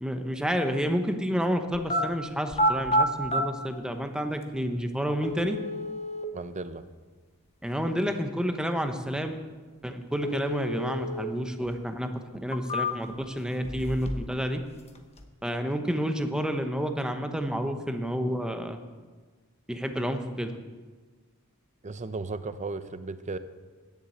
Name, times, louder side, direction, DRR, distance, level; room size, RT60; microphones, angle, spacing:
voice 1, 0.0-5.6 7.6-9.4 9.8-14.6 15.4-18.8 19.7-20.5, equal, 5° right, 6 dB, 0.8 m, -30 dB
sound 1, 1.7-2.0 2.5-3.4 4.4-4.5 5.2-6.3 10.2-11.3 11.6-11.7 12.3-13.2 13.6-14.4 14.6-15.2, equal, 30° left, 1.0 m, -29 dB
voice 2, 6.3-6.8 21.8-23.4, right 3 dB, 35° right, 12 dB, 0.6 m, -35 dB
10.0 x 7.3 x 8.6 m, 1.4 s
head